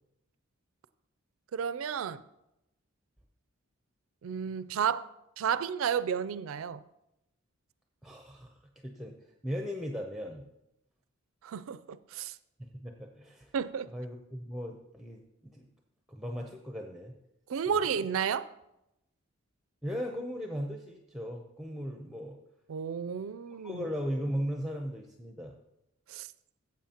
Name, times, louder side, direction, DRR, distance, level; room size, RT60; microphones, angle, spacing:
voice 1, 1.5-2.2 4.2-5.1 5.4-6.8 11.4-12.4 13.5-13.9 17.5-18.5 22.7-23.8 26.1-26.3, right 7 dB, 80° right, 14 dB, 0.4 m, -32 dB
voice 2, 8.0-8.5 8.8-9.2 9.4-10.4 12.6-13.5 13.9-15.7 16.1-17.1 17.7-17.9 19.8-22.4 23.5-25.6, equal, ahead, 2 dB, 0.6 m, -37 dB
14.5 x 7.7 x 2.9 m, 0.87 s
head